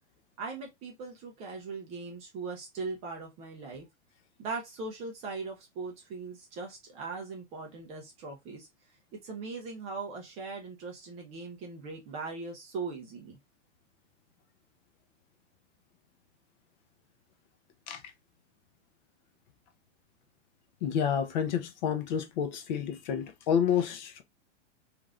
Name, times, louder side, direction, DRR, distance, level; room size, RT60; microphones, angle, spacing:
voice 1, 0.4-3.8 4.4-8.7 9.1-13.4, right 4 dB, 20° right, 0.4 m, -40 dB
voice 2, 20.8-24.2, left 8 dB, 40° left, 0.4 m, -29 dB
3.0 x 2.4 x 2.4 m
hypercardioid pair, 140°, 37 cm